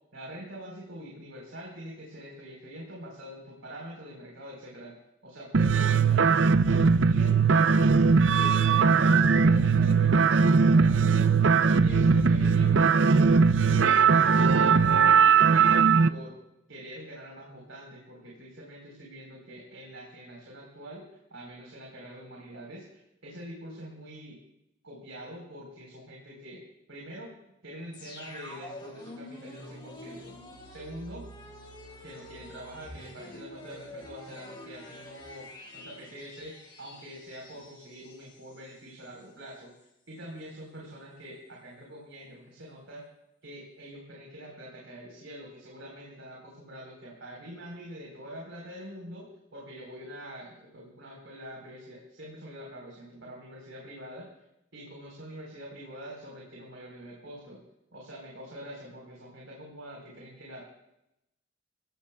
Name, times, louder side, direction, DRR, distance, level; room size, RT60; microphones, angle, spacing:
voice 1, 0.1-4.9 5.2-8.0 8.3-11.5 11.7-13.3 13.6-16.3 16.7-24.4 24.8-26.6 26.9-27.3 27.6-30.4 30.7-31.2 32.0-35.5 35.7-39.7 40.1-43.0 43.4-54.3 54.7-57.6 57.9-60.7, equal, 90° right, -3 dB, 4.4 m, -45 dB
sound 1, 5.5-16.1, right 5 dB, 70° right, 0.6 m, -20 dB
sound 2, 27.9-38.7 39.1-39.2, left 1 dB, 25° left, 2.9 m, -47 dB
25.0 x 17.0 x 2.4 m, 0.85 s
head